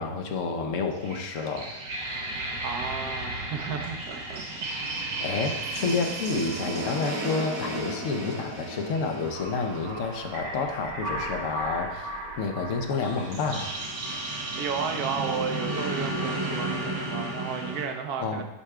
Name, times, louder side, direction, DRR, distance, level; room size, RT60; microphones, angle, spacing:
voice 1, 0.0-1.8 5.2-12.1 12.4-13.8 18.2-18.4, left 4 dB, 55° left, 4 dB, 1.0 m, -29 dB
sound 1, 0.9-17.8, right 1 dB, 85° right, 1.9 m, -33 dB
voice 2, 2.6-4.4 4.8-4.9 14.6-18.4, right 6 dB, 70° right, 5 dB, 1.3 m, -33 dB
9.9 x 3.4 x 4.8 m, 0.95 s
omnidirectional pair, 1.8 m